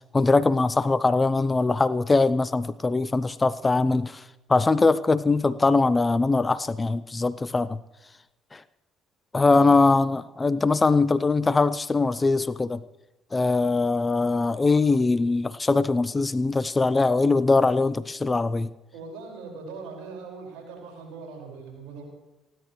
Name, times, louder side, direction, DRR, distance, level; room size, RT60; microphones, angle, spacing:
voice 1, 0.1-4.2 4.5-7.8 8.5-8.6 9.3-12.8 13.3-18.7, left 3 dB, 25° left, 18 dB, 0.5 m, -22 dB
voice 2, 9.5-9.8 18.9-22.0, right 4 dB, 65° right, 0 dB, 5.0 m, -41 dB
30.0 x 11.0 x 3.1 m, 1.0 s
figure-of-eight pair, 50°, 0 cm